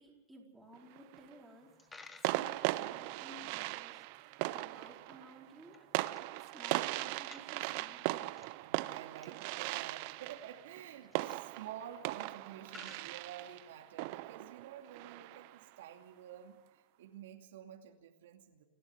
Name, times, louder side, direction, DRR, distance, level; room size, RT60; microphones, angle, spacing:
voice 1, 0.0-5.8 6.2-8.4, right 1 dB, 5° right, -2 dB, 4.6 m, -56 dB
sound 1, 0.7-1.3 2.2-15.6, right 19 dB, 50° right, 0.7 m, -39 dB
Coin (dropping), 1.6-13.9, left 4 dB, 10° left, 1.3 m, -61 dB
voice 2, 8.6-18.6, right 10 dB, 75° right, 3 dB, 2.6 m, -50 dB
29.0 x 12.0 x 8.1 m, 1.2 s
supercardioid pair, 150°, 0 cm